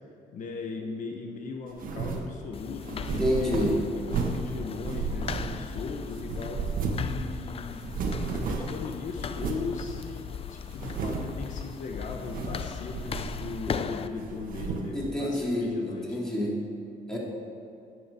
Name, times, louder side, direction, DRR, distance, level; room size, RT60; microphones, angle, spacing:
voice 1, 0.3-3.6 4.2-6.7 7.0-7.8 8.3-16.2, left 4 dB, 55° left, 2 dB, 1.1 m, -38 dB
sound 1, 1.8-2.3 2.8-4.5 4.8-5.8 6.1-7.2 7.4-7.5 7.8-8.8 9.4-9.7 10.2-10.3 10.7-11.4 12.1-12.7 12.9-13.8 14.2-15.0, right 4 dB, 65° right, 1.5 m, -32 dB
sound 2, 2.5-14.1, left 7 dB, 40° left, 0.5 m, -38 dB
voice 2, 3.2-3.7 13.7-13.8 14.9-16.6 17.1-17.2, left 1 dB, 5° left, -5 dB, 3.1 m, -28 dB
10.0 x 7.2 x 8.6 m, 2.7 s
cardioid pair, 100°, 15 cm